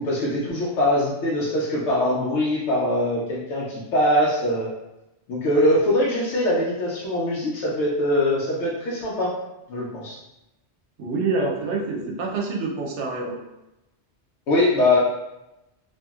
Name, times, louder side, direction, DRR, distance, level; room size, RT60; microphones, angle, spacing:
voice 1, 0.0-4.7 5.3-9.3 9.7-10.2 14.5-15.0, left 1 dB, 80° left, -5 dB, 0.9 m, -22 dB
voice 2, 11.0-13.4, right 3 dB, 80° right, 0 dB, 0.9 m, -26 dB
2.8 x 2.5 x 2.3 m, 0.93 s
omnidirectional pair, 1.2 m